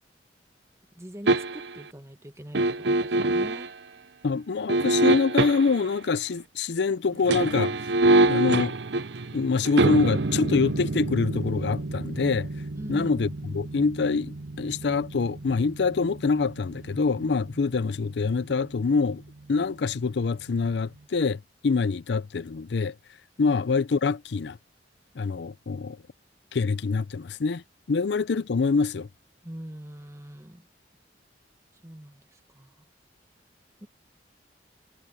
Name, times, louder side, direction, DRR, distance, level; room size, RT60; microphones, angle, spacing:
voice 1, 0.9-3.7 12.8-13.1 19.5-19.7 23.4-23.5 29.4-30.7 31.8-32.7 33.8-33.9, equal, 15° right, 1.4 m, -42 dB
sound 1, 1.3-1.8 2.5-3.7 4.7-5.9 7.1-18.1 18.4-18.5, right 2 dB, 70° right, 0.8 m, -26 dB
voice 2, 4.2-7.7 8.3-8.8 9.3-12.5 12.9-19.2 19.5-22.9 23.4-24.6 25.2-26.0 26.5-27.6 27.9-29.1, left 4 dB, 65° left, 0.5 m, -25 dB
head